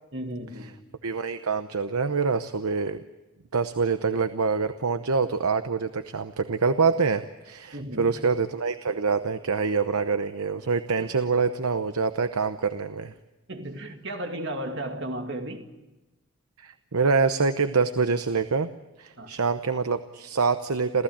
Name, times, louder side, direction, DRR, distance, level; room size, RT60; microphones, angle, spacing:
voice 1, 0.1-0.8 7.7-8.1 11.0-11.1 13.5-15.7 19.2-19.4, right 1 dB, 50° right, 4 dB, 2.5 m, -34 dB
voice 2, 1.0-3.0 3.5-13.1 16.6-18.7 19.0-21.0, right 4 dB, 90° right, 10 dB, 0.9 m, -25 dB
28.0 x 15.5 x 8.8 m, 1.1 s
head